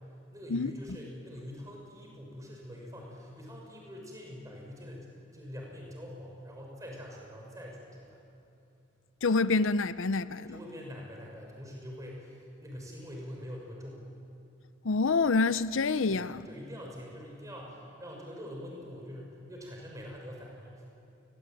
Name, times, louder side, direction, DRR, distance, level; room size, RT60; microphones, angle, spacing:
voice 1, 0.3-8.3 10.5-14.1 16.1-20.8, equal, 15° right, 6.3 m, -44 dB
voice 2, 9.2-10.6 14.8-16.5, left 3 dB, 70° left, 0.6 m, -27 dB
28.5 x 22.0 x 9.3 m
head